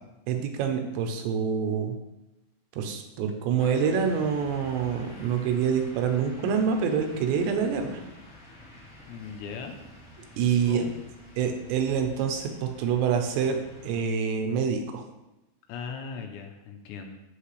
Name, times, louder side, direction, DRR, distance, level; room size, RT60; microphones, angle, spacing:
voice 1, 0.3-2.0 2.8-8.0 10.4-10.9 11.4-15.0, right 6 dB, 85° right, 5 dB, 3.0 m, -26 dB
sound 1, 3.6-14.0, left 1 dB, 15° left, 2.3 m, -48 dB
voice 2, 9.1-9.8 10.5-10.9 15.7-17.2, left 6 dB, 80° left, 4 dB, 2.9 m, -38 dB
8.3 x 8.3 x 3.3 m, 0.96 s
omnidirectional pair, 5.1 m